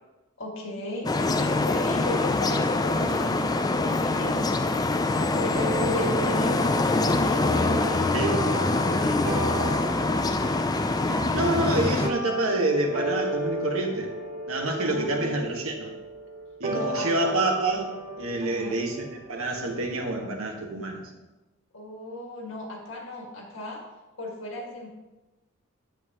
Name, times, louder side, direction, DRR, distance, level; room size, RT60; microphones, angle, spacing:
voice 1, 0.4-4.6 5.1-8.5 8.8-9.9 14.8-15.5 16.7-17.3 18.4-18.8 21.7-23.8 24.2-24.9, left 1 dB, 60° left, 0 dB, 1.9 m, -37 dB
sound 1, 1.0-12.1, left 2 dB, 20° left, 0.3 m, -24 dB
sound 2, 5.5-20.3, right 1 dB, 40° right, 1.0 m, -34 dB
voice 2, 11.3-14.1 14.5-16.0 16.6-21.1, right 2 dB, 75° right, 2 dB, 1.4 m, -27 dB
9.6 x 8.8 x 2.9 m, 1.1 s
head